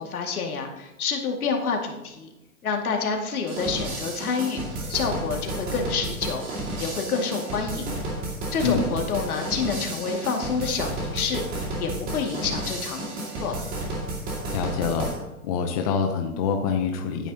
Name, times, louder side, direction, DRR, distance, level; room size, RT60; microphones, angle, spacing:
voice 1, 0.0-2.3 2.6-4.6 4.9-6.5 6.8-8.0 8.5-11.4 11.8-13.6, left 5 dB, 75° left, 2 dB, 2.3 m, -28 dB
sound 1, 3.5-15.2, right 2 dB, 20° right, 2.3 m, -32 dB
voice 2, 14.5-15.1 15.4-17.3, left 6 dB, 25° left, 3 dB, 0.7 m, -25 dB
12.5 x 9.1 x 2.9 m, 0.95 s
hypercardioid pair, 155°, 44 cm